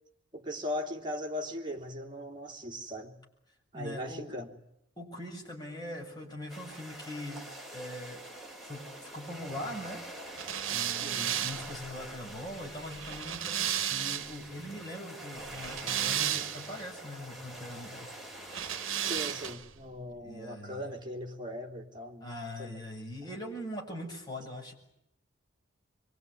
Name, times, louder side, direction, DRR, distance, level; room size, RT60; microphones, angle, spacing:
voice 1, 0.3-3.2 3.7-4.5 11.0-11.3 19.0-22.8, left 1 dB, 25° right, 3.1 m, -39 dB
voice 2, 3.7-4.4 5.0-7.4 7.7-8.2 8.6-18.1 20.2-20.9 22.2-24.7, left 1 dB, 20° left, 7.6 m, -42 dB
sound 1, 6.5-19.5, right 1 dB, ahead, 4.9 m, -46 dB
sound 2, 10.4-14.5 15.4-16.8 18.5-19.7, right 10 dB, 90° right, 1.0 m, -34 dB
24.5 x 24.0 x 9.9 m
head